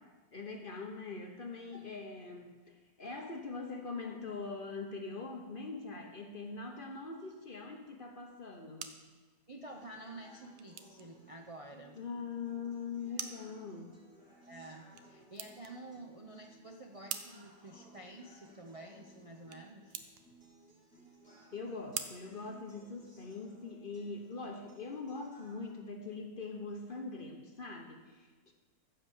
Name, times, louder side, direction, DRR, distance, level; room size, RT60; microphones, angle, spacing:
voice 1, 0.3-9.0 11.9-13.9 21.5-28.5, left 4 dB, 35° left, 3 dB, 0.9 m, -42 dB
sound 1, 8.3-23.3, right 9 dB, 90° right, 1.5 m, -49 dB
voice 2, 9.5-12.0 13.2-13.3 14.5-20.0, right 2 dB, 60° right, 1 dB, 0.3 m, -50 dB
sound 2, 9.7-25.7, right 1 dB, 5° left, 3.5 m, -60 dB
14.5 x 5.1 x 7.2 m, 1.3 s
omnidirectional pair, 1.9 m